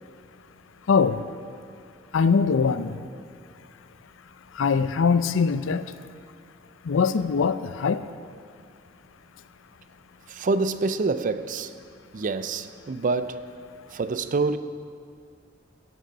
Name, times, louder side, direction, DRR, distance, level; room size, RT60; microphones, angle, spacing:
voice 1, 0.9-1.2 2.1-2.9 4.6-5.8 6.9-8.0, left 5 dB, 90° left, 0.5 m, -22 dB
voice 2, 10.3-11.7 12.1-13.6 13.9-14.6, right 3 dB, 45° right, 0.4 m, -26 dB
11.0 x 6.7 x 7.6 m
head